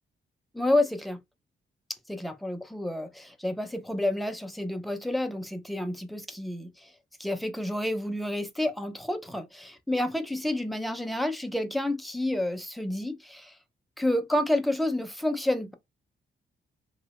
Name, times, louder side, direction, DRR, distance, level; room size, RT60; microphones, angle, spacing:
voice 1, 0.5-1.2 2.1-6.9 7.2-13.6 14.0-15.7, left 1 dB, ahead, 0.3 m, -29 dB
2.7 x 2.1 x 2.8 m
wide cardioid pair, 140°, 19 cm